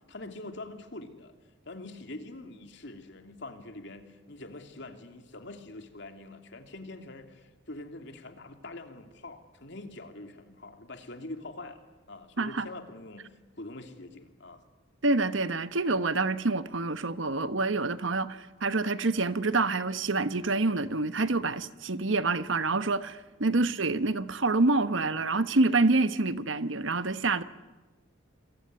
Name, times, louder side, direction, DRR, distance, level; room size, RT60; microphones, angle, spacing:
voice 1, 0.1-1.3 1.6-13.3 13.6-14.6 23.5-23.8, left 2 dB, 60° left, 2.9 m, -44 dB
voice 2, 12.4-12.7 15.0-27.4, right 3 dB, 70° right, 1.2 m, -27 dB
28.0 x 22.0 x 9.5 m
head